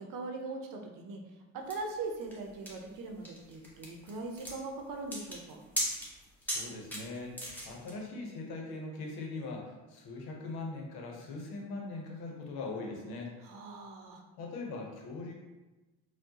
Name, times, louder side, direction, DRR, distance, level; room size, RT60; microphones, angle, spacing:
voice 1, 0.0-5.6 13.4-14.2, right 3 dB, 55° right, 2 dB, 0.8 m, -41 dB
sound 1, 1.7-7.9, equal, 5° left, 1.2 m, -39 dB
voice 2, 6.4-7.3 7.6-13.3 14.4-15.3, left 3 dB, 75° left, 0 dB, 0.9 m, -41 dB
4.4 x 2.3 x 2.8 m, 1.1 s
supercardioid pair, 75°, 38 cm